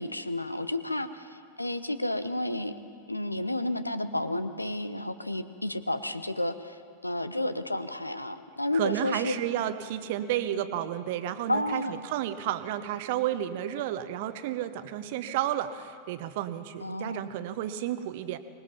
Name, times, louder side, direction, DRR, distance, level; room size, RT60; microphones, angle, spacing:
voice 1, 0.0-2.8 3.1-9.4 11.5-12.1 16.8-17.2, left 1 dB, 85° left, 12 dB, 0.9 m, -31 dB
voice 2, 8.7-18.4, right 11 dB, 50° right, 12 dB, 1.0 m, -31 dB
24.5 x 19.5 x 5.8 m, 2.2 s
figure-of-eight pair, 90°, 0 cm